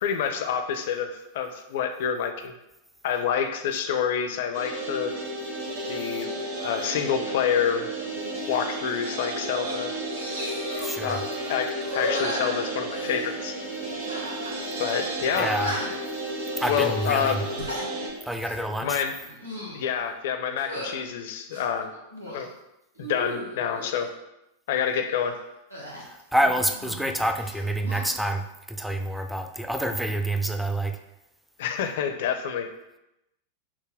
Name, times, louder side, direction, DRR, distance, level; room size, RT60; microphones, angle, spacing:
voice 1, 0.0-2.5 3.0-5.1 5.9-7.9 8.5-9.9 11.0-13.6 14.8-15.5 16.7-17.5 18.8-19.1 19.7-21.9 22.3-22.5 23.0-24.1 24.7-25.4 31.6-32.7, left 8 dB, 55° left, 7 dB, 0.5 m, -28 dB
sound 1, 4.5-18.1, right 1 dB, 55° right, 1.3 m, -33 dB
sound 2, 8.9-9.0 9.3-9.8 10.1-11.0 11.8-13.3 14.1-14.6 14.9-15.0 15.4-16.1 16.5-16.8 17.4-17.9 18.3-18.6 19.2-19.8 20.6-21.0 21.5-22.5 23.0-23.9 25.7-27.1 27.4-28.1, equal, 80° right, 0.9 m, -35 dB
voice 2, 10.8-11.2 15.4-15.7 16.6-17.4 18.3-19.1 26.0-31.0, right 1 dB, ahead, 7 dB, 0.4 m, -27 dB
6.0 x 2.2 x 3.4 m, 0.89 s
figure-of-eight pair, 90°, 0 cm